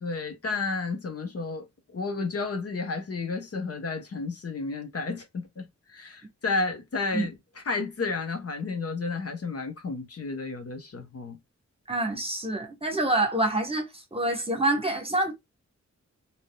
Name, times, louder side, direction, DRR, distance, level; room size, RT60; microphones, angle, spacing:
voice 1, 0.0-7.3 7.7-11.4, left 3 dB, 55° left, 0.9 m, -32 dB
voice 2, 11.9-15.3, right 1 dB, 20° right, 1.1 m, -27 dB
3.6 x 2.7 x 2.2 m
wide cardioid pair, 90°, 29 cm